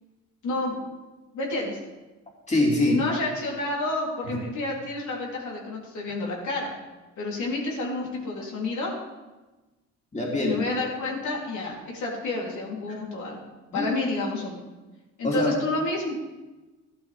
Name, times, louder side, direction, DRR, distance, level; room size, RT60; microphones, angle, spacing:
voice 1, 0.4-0.9 1.3-1.8 2.9-6.7 7.2-8.9 10.4-13.4 13.7-14.6 15.2-16.2, left 2 dB, 75° left, -3 dB, 3.4 m, -29 dB
voice 2, 2.5-3.0 4.2-4.4 10.1-10.6 12.9-13.0 13.7-13.9 15.2-15.6, left 2 dB, 25° left, -2 dB, 2.8 m, -24 dB
13.0 x 11.5 x 3.5 m, 1.1 s
cardioid pair, 90°, 30 cm